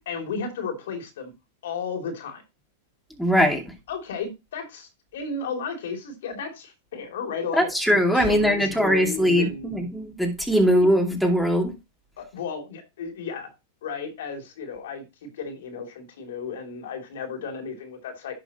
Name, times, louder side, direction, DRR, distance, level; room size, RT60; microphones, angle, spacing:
voice 1, 0.1-1.3 1.6-2.4 3.9-7.7 8.1-9.8 12.2-13.5 13.8-18.3, left 5 dB, 75° left, 3.0 m, -34 dB
voice 2, 3.2-3.6 7.5-11.7, equal, ahead, 2.6 m, -21 dB
11.0 x 6.0 x 3.0 m
hypercardioid pair, 110°, 0 cm